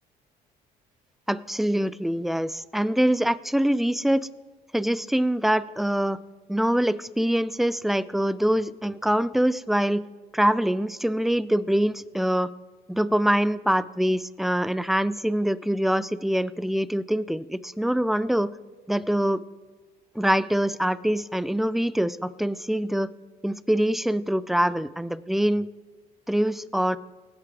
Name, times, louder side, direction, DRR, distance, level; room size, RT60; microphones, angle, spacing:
voice 1, 1.3-4.3 4.7-6.2 6.5-10.0 10.3-12.5 12.9-18.5 18.9-19.4 20.2-23.1 23.4-25.7 26.3-27.0, equal, ahead, 17 dB, 0.3 m, -24 dB
19.0 x 8.3 x 3.4 m, 1.3 s
cardioid pair, 110°, 17 cm